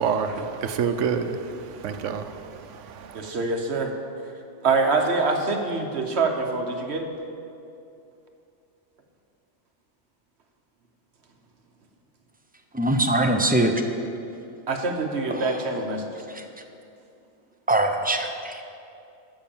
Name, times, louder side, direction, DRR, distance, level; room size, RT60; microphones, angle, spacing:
voice 1, 0.0-3.3, right 6 dB, 85° right, 9 dB, 1.1 m, -28 dB
voice 2, 3.1-3.9 4.6-7.1 14.7-16.0, right 3 dB, 65° right, 4 dB, 1.3 m, -25 dB
voice 3, 12.7-13.7 15.3-15.6 16.3-16.4 17.7-18.6, right 1 dB, 10° right, 4 dB, 0.5 m, -23 dB
13.0 x 6.0 x 7.1 m, 2.6 s
omnidirectional pair, 1.2 m